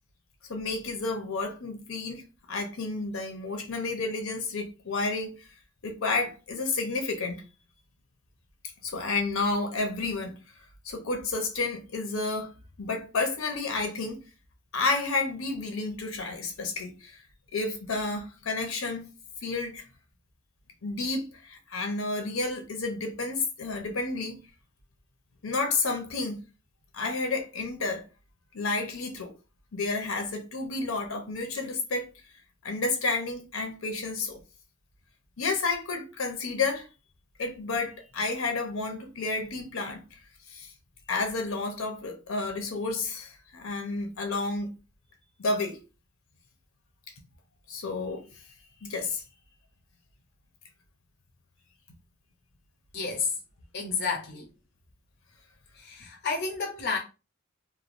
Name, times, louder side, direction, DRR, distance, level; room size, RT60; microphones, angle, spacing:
voice 1, 0.5-2.2 2.5-5.4 5.8-7.4 8.8-10.3 10.8-12.5 12.8-14.2 14.7-17.2 17.5-19.1 19.4-19.8 20.8-24.4 25.4-26.4 26.9-28.0 28.5-29.3 29.7-32.1 32.6-34.4 35.4-36.9 37.4-40.0 40.5-40.7 41.1-44.7 45.4-45.8 47.7-48.2 48.8-49.2, left 3 dB, 80° left, 0.7 m, -31 dB
voice 2, 52.9-53.4 53.7-54.5 55.7-57.0, left 4 dB, 50° left, 0.5 m, -31 dB
3.1 x 2.2 x 2.5 m
head